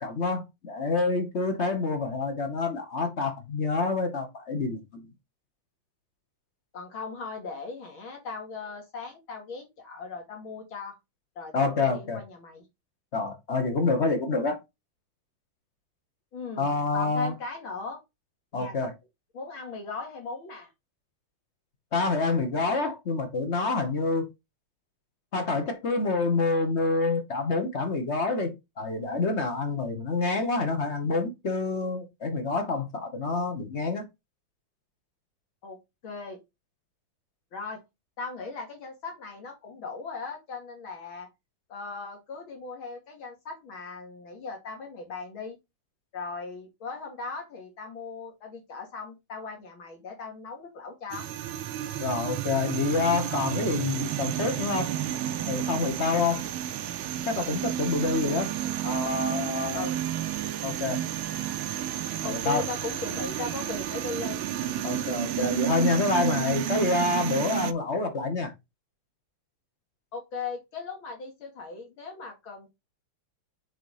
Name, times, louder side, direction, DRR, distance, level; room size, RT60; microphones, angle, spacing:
voice 1, 0.0-5.1 11.5-12.2 13.1-14.6 16.6-17.3 18.5-18.9 21.9-24.3 25.3-34.1 52.0-54.9 55.5-56.4 57.3-58.5 58.8-59.9 60.6-61.0 62.2-62.7 64.8-68.5, left 3 dB, 40° left, 1.1 m, -27 dB
voice 2, 6.7-11.0 11.4-12.6 16.3-16.6 16.9-18.0 18.5-18.7 19.3-20.7 35.6-35.8 36.0-36.4 37.5-37.8 38.2-41.3 41.7-45.6 46.1-51.3 59.7-60.0 62.2-64.4 70.1-72.7, left 4 dB, 65° left, 3.0 m, -38 dB
sound 1, 51.1-67.7, right 11 dB, 75° right, 1.5 m, -31 dB
6.6 x 4.0 x 4.8 m
omnidirectional pair, 2.4 m